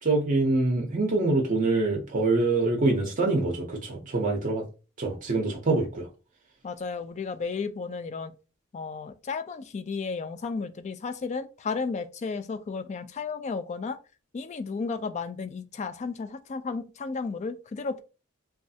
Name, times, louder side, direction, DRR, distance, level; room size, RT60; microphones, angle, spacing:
voice 1, 0.0-4.6 5.0-6.1, right 2 dB, 40° right, 0.6 m, -25 dB
voice 2, 6.6-8.3 8.7-14.0 14.3-18.0, left 4 dB, 35° left, 0.3 m, -33 dB
3.2 x 2.3 x 2.7 m
head